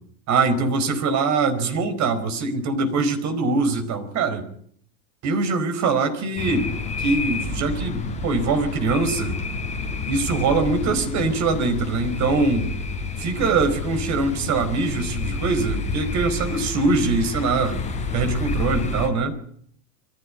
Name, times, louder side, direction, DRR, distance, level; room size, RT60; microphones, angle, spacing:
voice 1, 0.3-4.4 5.2-6.7 7.0-9.4 10.1-12.7 13.2-17.8 18.1-19.4, right 3 dB, 35° right, 8 dB, 4.9 m, -23 dB
sound 1, 6.4-19.1, left 3 dB, 15° left, 5.0 m, -29 dB
23.0 x 15.5 x 9.9 m, 0.62 s
supercardioid pair, 135°, 46 cm